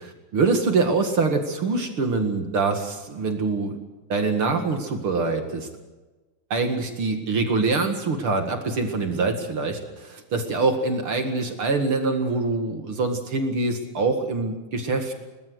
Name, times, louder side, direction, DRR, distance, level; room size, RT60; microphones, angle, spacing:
voice 1, 0.0-3.8 4.1-5.7 6.5-15.1, right 3 dB, 45° right, 5 dB, 2.3 m, -24 dB
22.0 x 19.5 x 6.4 m, 1.2 s
omnidirectional pair, 4.1 m